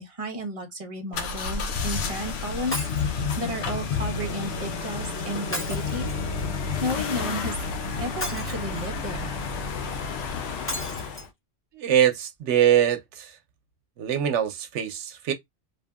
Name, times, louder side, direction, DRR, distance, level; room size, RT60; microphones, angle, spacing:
voice 1, 0.0-6.1 6.8-7.5 8.0-9.3, equal, 35° right, 0.8 m, -33 dB
sound 1, 1.1-11.3, left 5 dB, 70° left, 0.8 m, -30 dB
Shatter, 2.7-3.2 5.5-6.4 8.2-9.0 10.7-11.3 11.9-12.0 12.3-12.4, left 1 dB, 10° left, 1.0 m, -34 dB
voice 2, 11.7-13.4 14.0-15.3, right 10 dB, 80° right, 0.9 m, -23 dB
2.6 x 2.6 x 2.3 m
omnidirectional pair, 1.2 m